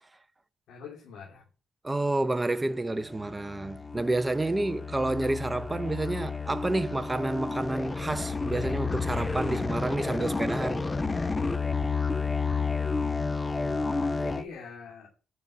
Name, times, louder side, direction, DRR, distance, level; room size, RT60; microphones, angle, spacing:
voice 1, 0.7-1.4 4.5-4.6 13.6-15.1, left 5 dB, 85° left, 2.8 m, -45 dB
voice 2, 1.8-10.9, right 2 dB, 15° right, 0.6 m, -29 dB
sound 1, 3.0-14.4, left 4 dB, 20° left, 0.6 m, -31 dB
11.0 x 5.5 x 7.2 m
cardioid pair, 90°, 0 cm